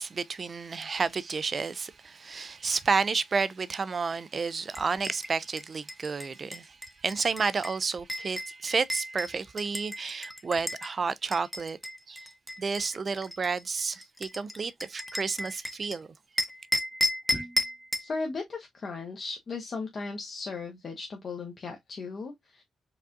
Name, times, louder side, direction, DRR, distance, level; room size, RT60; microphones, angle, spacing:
voice 1, 0.0-6.8 7.0-11.8 12.1-12.2 12.6-16.1, right 5 dB, 45° right, 0.4 m, -31 dB
sound 1, 4.7-10.9 11.3-16.0 16.4-18.1, left 1 dB, ahead, 0.8 m, -34 dB
voice 2, 18.0-22.6, left 4 dB, 50° left, 0.8 m, -36 dB
4.6 x 2.5 x 2.4 m
supercardioid pair, 60°, 0 cm